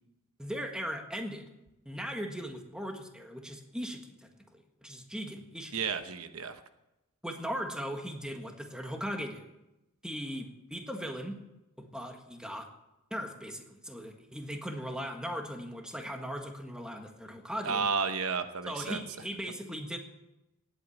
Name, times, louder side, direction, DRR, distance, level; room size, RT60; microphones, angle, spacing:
voice 1, 0.4-1.4 1.9-4.2 4.5-5.8 7.2-9.5 10.0-11.4 11.8-12.7 13.1-17.9 18.7-20.0, equal, 5° right, 3 dB, 1.6 m, -38 dB
voice 2, 5.7-6.6 17.6-19.0, right 5 dB, 70° right, 9 dB, 1.0 m, -32 dB
18.0 x 8.6 x 7.1 m, 0.95 s
head